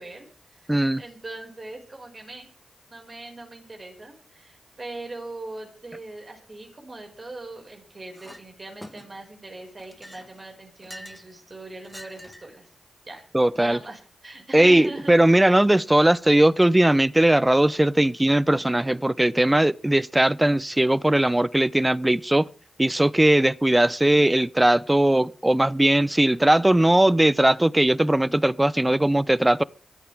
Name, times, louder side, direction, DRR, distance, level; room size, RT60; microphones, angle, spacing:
voice 1, 0.0-2.5 2.9-12.7 13.1-13.2 13.5-15.2, right 2 dB, 40° right, 5.7 m, -41 dB
voice 2, 0.7-1.0 13.3-13.8 14.5-22.5 22.8-29.6, right 1 dB, 15° right, 0.7 m, -19 dB
Chink clink, 8.1-8.4 8.8-9.3 9.8-11.3 11.8-12.6, left 1 dB, 10° left, 1.3 m, -44 dB
24.0 x 8.7 x 3.6 m
cardioid pair, 50°, 0 cm